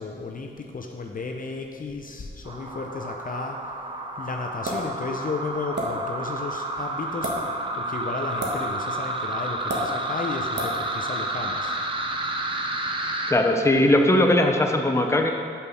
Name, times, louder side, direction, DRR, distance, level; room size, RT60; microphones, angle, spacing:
voice 1, 0.0-3.6 4.2-7.3 7.7-11.8, left 4 dB, 40° left, 2 dB, 0.7 m, -33 dB
sound 1, 2.5-13.3, right 1 dB, 25° right, 0.9 m, -30 dB
sound 2, 4.6-4.9 5.7-5.9 7.1-7.4 8.4-8.6 9.7-9.8 10.6-10.7, right 1 dB, 55° right, 1.5 m, -28 dB
voice 2, 13.3-15.3, left 1 dB, 15° left, 3 dB, 0.8 m, -19 dB
5.6 x 5.2 x 6.1 m, 2.3 s
cardioid pair, 50°, 21 cm